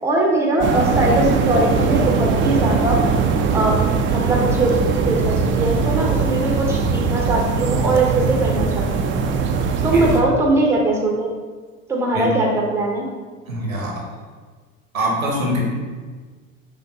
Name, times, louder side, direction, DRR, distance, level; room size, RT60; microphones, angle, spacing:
voice 1, 0.0-3.0 3.5-3.8 4.0-9.1 9.8-11.3 11.9-13.1, right 2 dB, 5° right, -1 dB, 0.9 m, -20 dB
sound 1, 0.6-10.2, right 5 dB, 30° right, 0.5 m, -20 dB
voice 2, 13.4-14.0 14.9-15.6, equal, 85° right, -3 dB, 1.1 m, -23 dB
5.2 x 2.6 x 3.5 m, 1.4 s
figure-of-eight pair, 65°, 40 cm